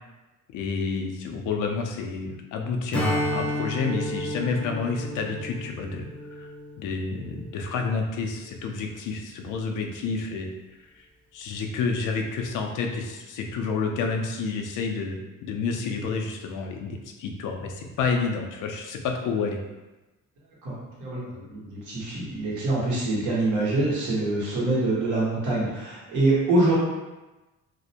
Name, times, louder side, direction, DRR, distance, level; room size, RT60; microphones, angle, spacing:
voice 1, 0.5-6.5 6.8-10.5 11.3-19.6, left 4 dB, 85° left, 3 dB, 0.5 m, -29 dB
Strum, 2.9-7.7, equal, 5° left, 0.4 m, -32 dB
voice 2, 20.6-26.7, right 2 dB, 75° right, -7 dB, 1.1 m, -25 dB
2.5 x 2.0 x 2.7 m, 1.1 s
cardioid pair, 90°, 30 cm